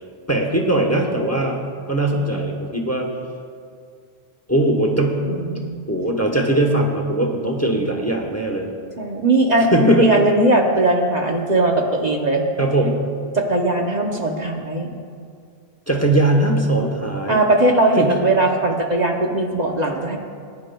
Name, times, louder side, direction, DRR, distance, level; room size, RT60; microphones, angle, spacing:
voice 1, 0.3-1.6 1.9-3.1 4.5-5.2 5.9-8.7 9.7-10.1 12.6-13.0 15.9-17.4 18.0-18.1, right 1 dB, 15° left, 1 dB, 0.9 m, -19 dB
voice 2, 5.2-5.8 7.7-7.9 9.0-12.4 13.3-14.9 17.3-20.2, right 2 dB, 45° right, 1 dB, 0.9 m, -19 dB
19.5 x 10.5 x 2.3 m, 2.2 s
omnidirectional pair, 1.1 m